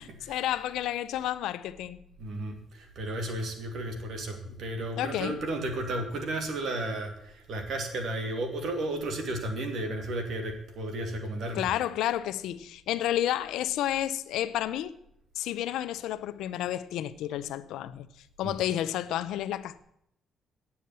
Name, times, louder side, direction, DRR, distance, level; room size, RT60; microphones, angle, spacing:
voice 1, 0.2-2.0 5.0-5.4 11.5-15.0 15.3-18.1 18.4-19.8, left 12 dB, 85° left, 0.6 m, -31 dB
voice 2, 2.2-11.6 18.4-18.5, right 1 dB, 65° right, 2.7 m, -33 dB
9.6 x 7.2 x 8.9 m
cardioid pair, 90°, 0 cm